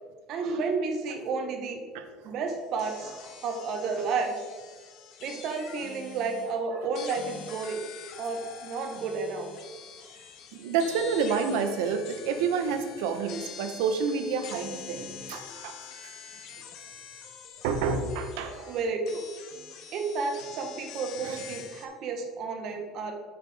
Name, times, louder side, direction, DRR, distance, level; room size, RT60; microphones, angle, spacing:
voice 1, 0.3-1.8 2.2-4.3 5.2-7.8 8.2-9.5 18.3-19.2 19.9-23.2, right 4 dB, 40° right, 4 dB, 0.9 m, -31 dB
sound 1, 2.5-6.6 6.9-21.9, left 7 dB, 45° left, 0.7 m, -45 dB
voice 2, 10.5-15.7 17.6-18.5 21.2-21.4, right 5 dB, 80° right, 8 dB, 0.8 m, -29 dB
7.6 x 5.7 x 3.4 m, 1.5 s
cardioid pair, 170°, 0 cm